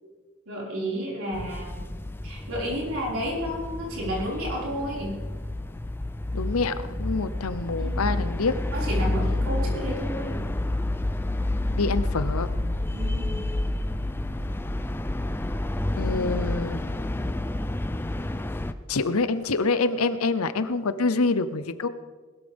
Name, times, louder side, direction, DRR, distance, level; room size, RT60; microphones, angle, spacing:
voice 1, 0.5-1.7 2.2-5.2 7.8-8.0 8.7-10.5 12.9-13.4, equal, 75° right, -4 dB, 5.3 m, -31 dB
sound 1, 1.3-18.7, left 1 dB, 10° left, 0.4 m, -29 dB
voice 2, 6.3-8.6 11.7-12.5 16.0-16.8 18.9-21.9, left 3 dB, 85° left, 13 dB, 0.8 m, -26 dB
20.5 x 13.0 x 3.6 m, 1.4 s
head